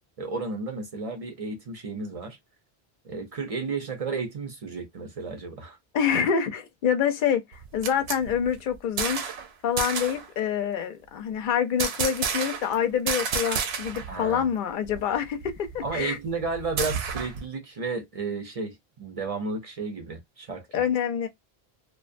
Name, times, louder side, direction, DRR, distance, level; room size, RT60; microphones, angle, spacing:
voice 1, 0.2-2.4 3.0-5.8 14.1-14.5 15.8-20.8, right 4 dB, 45° right, 0.5 m, -33 dB
voice 2, 5.9-9.2 9.6-16.2 20.7-21.3, left 8 dB, 60° left, 0.6 m, -26 dB
sound 1, 7.5-9.5 9.8-10.3 11.8-12.8 13.1-14.1 14.4-14.5 14.9-17.5, right 6 dB, 80° right, 0.8 m, -31 dB
2.4 x 2.2 x 2.5 m
omnidirectional pair, 1.1 m